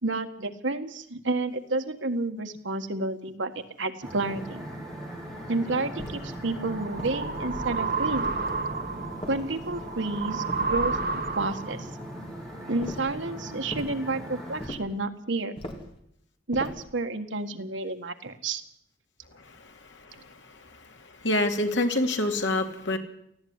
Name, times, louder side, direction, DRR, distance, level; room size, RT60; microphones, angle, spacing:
voice 1, 0.0-4.7 5.5-8.4 9.3-11.9 12.7-15.5 16.5-18.6, right 2 dB, 75° right, 6 dB, 1.7 m, -30 dB
sound 1, 4.0-14.7, equal, ahead, 6.5 m, -39 dB
sound 2, 6.0-6.4 7.0-7.6 8.2-8.7 9.2-9.9 10.5-11.2 12.8-13.2 13.7-14.0 14.6-15.0 15.6-16.0 16.5-16.9, equal, 30° left, 3.2 m, -40 dB
sound 3, 6.2-11.9, right 4 dB, 50° right, 1.2 m, -31 dB
voice 2, 21.2-23.0, left 1 dB, 70° left, 5 dB, 2.5 m, -25 dB
18.5 x 14.5 x 9.7 m, 0.73 s
head